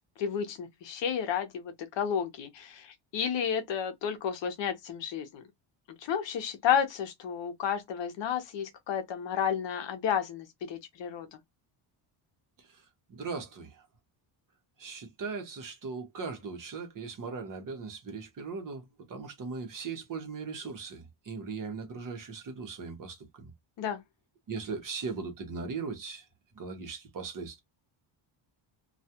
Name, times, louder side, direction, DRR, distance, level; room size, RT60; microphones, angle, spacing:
voice 1, 0.2-5.4 6.0-11.4 23.8-24.0, left 8 dB, 60° left, 0.8 m, -32 dB
voice 2, 13.1-13.8 14.8-23.5 24.5-26.2 26.6-27.6, right 4 dB, 40° right, 0.9 m, -39 dB
2.4 x 2.3 x 2.7 m
cardioid pair, 160°, 49 cm